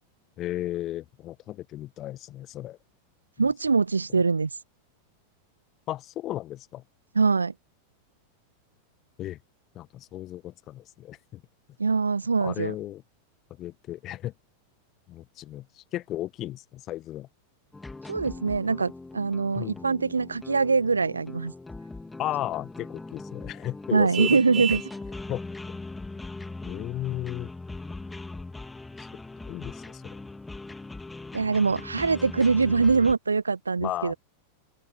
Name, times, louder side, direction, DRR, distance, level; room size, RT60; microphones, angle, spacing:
voice 1, 0.4-2.8 3.4-3.5 4.1-4.2 5.9-6.8 9.2-9.4 9.7-11.4 12.4-13.0 13.6-14.3 15.1-17.3 19.5-19.8 22.2-24.6 25.3-25.4 25.7-25.8 26.6-27.5 29.4-30.2 33.8-34.1, left 14 dB, 35° left, 1.2 m, -35 dB
voice 2, 3.4-4.5 7.2-7.5 11.8-12.7 18.1-21.5 23.9-24.8 31.3-34.1, right 4 dB, 75° right, 1.6 m, -23 dB
sound 1, 17.7-33.1, left 3 dB, 10° left, 3.3 m, -40 dB
Vehicle horn car horn honking, 24.1-25.0, right 9 dB, 25° right, 3.4 m, -31 dB
open air
figure-of-eight pair, 90°, 0 cm